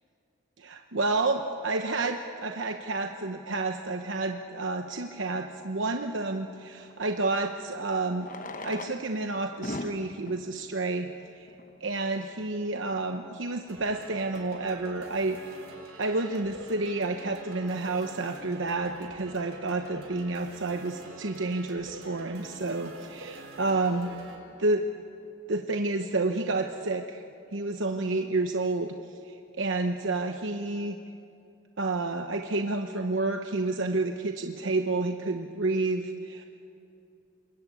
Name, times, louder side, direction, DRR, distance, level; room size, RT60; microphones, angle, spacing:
voice 1, 0.6-8.3 8.5-11.5 11.8-15.6 16.0-24.1 24.6-24.9 25.5-27.2 27.5-31.0 31.8-36.5, right 2 dB, 65° right, 5 dB, 0.9 m, -30 dB
Fireworks, 4.6-4.7 7.0-7.1 8.1-11.9 12.7-12.8 12.9-13.0 13.2-13.4 13.9-14.1, left 2 dB, 40° left, 0.9 m, -41 dB
sound 1, 13.7-24.4, right 2 dB, 85° right, 4.1 m, -46 dB
27.5 x 22.0 x 8.6 m, 2.8 s
head